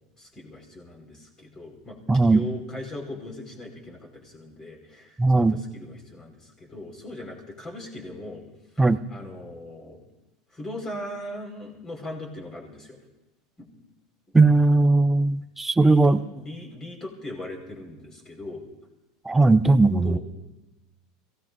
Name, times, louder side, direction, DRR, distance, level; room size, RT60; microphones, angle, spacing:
voice 1, 0.2-8.4 8.7-10.0 10.5-13.0 13.6-13.7 15.8-18.6 19.7-19.8 20.0-20.2, left 1 dB, 15° left, 0 dB, 4.9 m, -39 dB
voice 2, 2.1-2.4 5.2-5.6 8.8-9.0 14.3-16.2 19.3-20.2, right 3 dB, 10° right, 12 dB, 0.6 m, -18 dB
29.0 x 18.0 x 2.6 m, 1.0 s
supercardioid pair, 155°, 3 cm